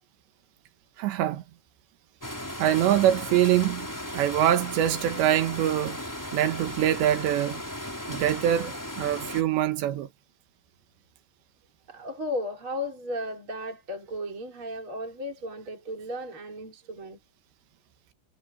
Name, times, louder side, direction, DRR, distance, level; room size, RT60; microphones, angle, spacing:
voice 1, 1.0-1.4 2.6-3.9 4.1-6.0 6.3-7.6 8.1-10.1, right 11 dB, 80° right, 3.7 m, -24 dB
sound 1, 2.2-9.4, left 1 dB, 5° left, 3.4 m, -36 dB
voice 2, 11.9-17.2, left 1 dB, 30° right, 5.4 m, -35 dB
omnidirectional pair, 5.0 m